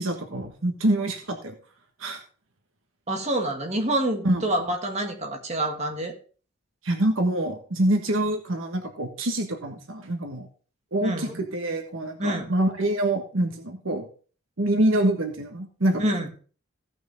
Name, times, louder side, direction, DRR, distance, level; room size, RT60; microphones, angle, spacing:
voice 1, 0.0-1.5 2.0-2.2 4.2-4.4 6.8-10.5 10.9-14.1 14.6-16.3, right 1 dB, 85° right, 4 dB, 1.4 m, -25 dB
voice 2, 3.1-6.1 11.0-11.4 12.2-12.5 16.0-16.3, right 1 dB, 35° right, 3 dB, 1.8 m, -27 dB
16.5 x 6.1 x 3.5 m, 0.39 s
head